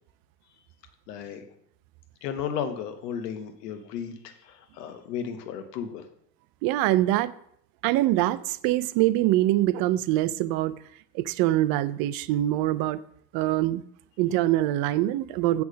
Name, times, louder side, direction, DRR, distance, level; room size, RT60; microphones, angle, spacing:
voice 1, 1.1-1.4 2.2-6.1, left 8 dB, 75° left, 1.3 m, -34 dB
voice 2, 6.6-7.3 7.8-10.8 11.1-13.0 13.3-13.8 14.2-15.6, right 15 dB, 45° right, 0.5 m, -24 dB
8.3 x 3.5 x 6.3 m
hypercardioid pair, 90°, 49 cm